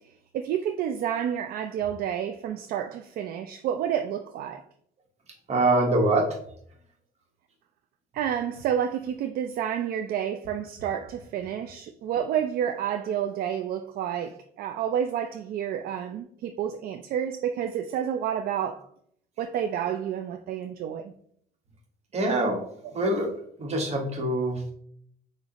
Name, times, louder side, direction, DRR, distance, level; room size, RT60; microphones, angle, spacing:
voice 1, 0.3-4.6 8.1-18.8 19.4-21.0, right 9 dB, 60° right, 0.4 m, -29 dB
voice 2, 5.5-6.4 22.1-22.6 22.9-23.3 23.6-24.7, right 2 dB, 40° right, 1.4 m, -24 dB
6.3 x 2.6 x 2.9 m
cardioid pair, 110°, 17 cm